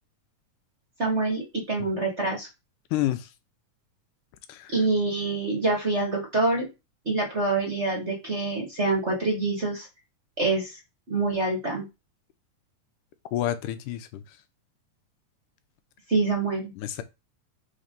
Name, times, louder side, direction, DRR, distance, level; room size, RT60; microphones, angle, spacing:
voice 1, 1.0-2.5 4.7-6.7 7.0-9.9 10.4-10.7 11.1-11.9 16.1-16.7, right 3 dB, 40° right, 1.0 m, -26 dB
voice 2, 2.9-3.3 4.5-4.7 13.3-14.2 16.8-17.0, left 13 dB, 80° left, 2.2 m, -29 dB
4.8 x 4.4 x 5.2 m
omnidirectional pair, 3.8 m